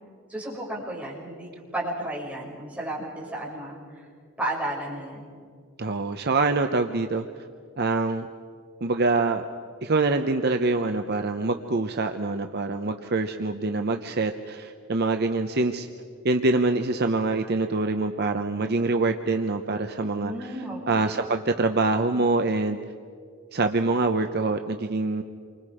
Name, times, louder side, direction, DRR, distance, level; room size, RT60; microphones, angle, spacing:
voice 1, 0.3-3.8 4.4-5.3 20.2-21.3, right 1 dB, 5° right, -7 dB, 6.4 m, -33 dB
voice 2, 5.8-7.3 7.8-8.3 8.8-9.5 9.8-15.9 16.2-20.3 20.9-22.8 23.5-25.2, right 3 dB, 50° right, 6 dB, 0.8 m, -25 dB
28.5 x 24.5 x 5.0 m, 2.1 s
head